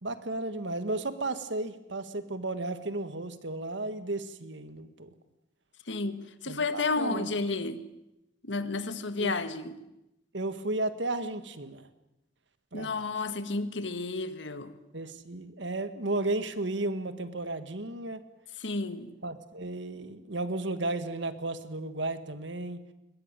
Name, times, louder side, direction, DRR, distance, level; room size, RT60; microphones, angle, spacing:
voice 1, 0.0-5.1 6.5-7.3 9.2-9.3 10.3-11.9 12.7-13.3 14.9-18.2 19.2-22.8, right 2 dB, 70° right, 11 dB, 1.8 m, -34 dB
voice 2, 5.9-7.8 8.4-9.7 12.7-14.7 18.6-19.1, left 3 dB, 70° left, 11 dB, 1.7 m, -31 dB
21.5 x 20.0 x 9.1 m, 0.90 s
head